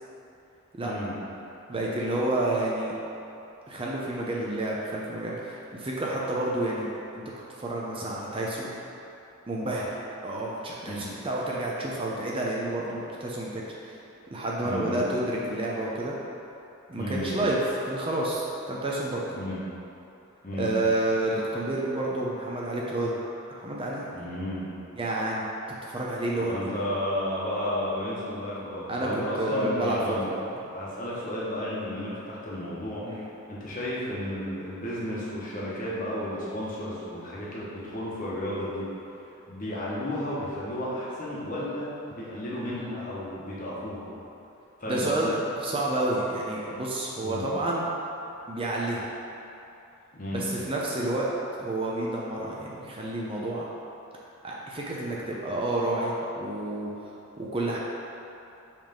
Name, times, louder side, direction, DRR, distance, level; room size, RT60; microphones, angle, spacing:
voice 1, 0.8-1.1 10.9-11.1 14.6-15.0 16.9-17.4 19.3-19.6 20.4-20.7 24.1-24.7 26.4-30.3 30.7-38.9 39.2-44.1 44.8-45.3 47.2-47.4 50.1-50.5, left 1 dB, 40° left, -7 dB, 1.3 m, -33 dB
voice 2, 1.7-2.9 3.7-6.9 7.1-7.2 7.6-8.7 9.5-9.9 10.2-14.0 14.3-16.1 16.9-17.6 17.8-19.4 20.6-23.2 23.5-24.1 24.9-25.4 25.9-26.8 28.9-30.5 33.0-33.3 44.9-47.8 48.5-49.1 50.3-51.3 51.6-53.7 54.4-57.0 57.4-57.8, right 1 dB, 25° right, -4 dB, 0.6 m, -29 dB
5.6 x 3.5 x 5.2 m, 2.9 s
head